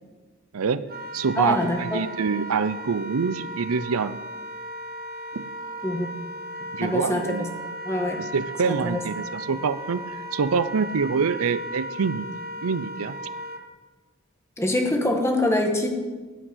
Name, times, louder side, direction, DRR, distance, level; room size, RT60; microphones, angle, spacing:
voice 1, 0.5-0.9 1.1-4.2 5.3-5.5 6.7-7.5 8.2-12.3 12.6-13.1, right 5 dB, 85° right, 15 dB, 0.6 m, -26 dB
Wind instrument woodwind instrument, 0.9-13.6, equal, 45° right, 1.3 m, -36 dB
voice 2, 1.4-2.0 5.8-6.1 6.8-7.5 7.8-8.2 8.6-9.0 14.6-15.9, left 1 dB, 10° left, 2 dB, 1.6 m, -24 dB
14.5 x 6.2 x 9.5 m, 1.3 s
head